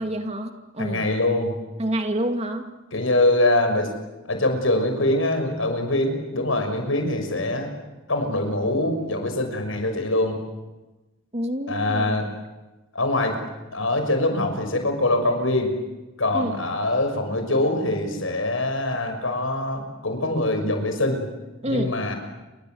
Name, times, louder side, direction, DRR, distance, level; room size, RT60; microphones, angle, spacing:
voice 1, 0.0-1.1 1.8-2.7 11.3-12.3 16.3-16.6 21.6-21.9, right 1 dB, 30° right, 5 dB, 2.5 m, -28 dB
voice 2, 0.8-1.6 2.9-3.9 4.3-7.7 8.1-10.4 11.7-12.3 12.9-13.4 13.7-15.8 16.2-21.2 21.6-22.1, left 1 dB, 80° left, 6 dB, 6.2 m, -23 dB
29.5 x 25.0 x 8.0 m, 1.1 s
head